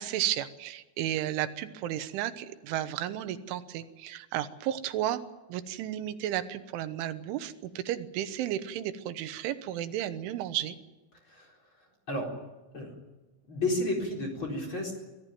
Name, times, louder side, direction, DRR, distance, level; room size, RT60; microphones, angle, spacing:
voice 1, 0.0-5.2 5.5-10.8, right 12 dB, 85° right, 11 dB, 3.5 m, -33 dB
voice 2, 13.5-14.9, left 2 dB, 25° left, 1 dB, 4.4 m, -31 dB
24.0 x 16.0 x 9.3 m, 1.2 s
omnidirectional pair, 5.4 m